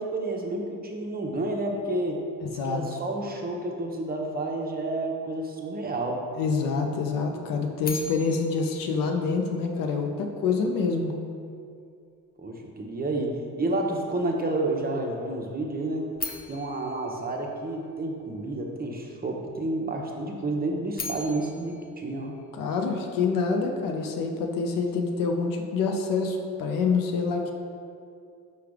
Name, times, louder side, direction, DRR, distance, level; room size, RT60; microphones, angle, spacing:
voice 1, 0.0-2.2 2.6-6.2 12.4-16.0 16.5-22.4, right 2 dB, 30° right, 1 dB, 0.7 m, -30 dB
voice 2, 2.4-2.8 6.3-11.1 22.5-27.5, left 4 dB, 90° left, 3 dB, 0.5 m, -26 dB
sound 1, 7.8-10.0 16.1-18.3 20.7-23.1, left 3 dB, 30° left, 0.5 m, -40 dB
4.8 x 2.3 x 4.8 m, 2.3 s
cardioid pair, 80°, 32 cm